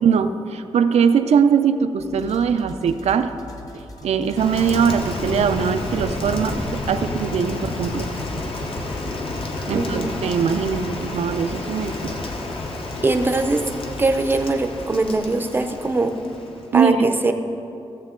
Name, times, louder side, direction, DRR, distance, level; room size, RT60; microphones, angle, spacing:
voice 1, 0.0-3.3 4.0-8.1 9.7-12.1 16.7-17.1, right 7 dB, 90° right, 9 dB, 0.5 m, -21 dB
sound 1, 2.0-15.2, left 2 dB, 35° left, 0.9 m, -41 dB
Rain, 4.4-16.8, left 2 dB, 60° left, 1.0 m, -30 dB
voice 2, 9.7-10.1 13.0-13.6 14.0-16.1 16.7-17.3, right 2 dB, 20° right, 6 dB, 0.5 m, -21 dB
15.0 x 7.3 x 3.7 m, 2.7 s
wide cardioid pair, 175°, 11 cm